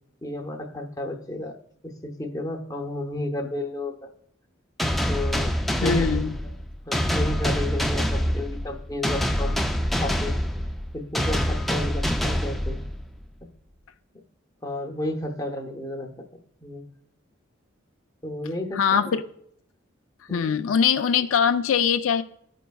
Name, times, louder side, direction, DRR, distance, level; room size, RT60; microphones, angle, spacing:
voice 1, 0.2-1.6 1.8-4.1 5.1-6.1 6.9-9.7 10.0-10.4 10.9-12.8 14.6-16.1 16.6-16.8 18.2-19.1 20.3-20.5, left 1 dB, 15° left, 0.7 m, -32 dB
sound 1, 4.8-13.3, equal, ahead, 0.3 m, -26 dB
voice 2, 5.8-6.4 18.7-19.2 20.3-22.2, left 7 dB, 85° left, 0.4 m, -22 dB
14.0 x 5.2 x 2.3 m
head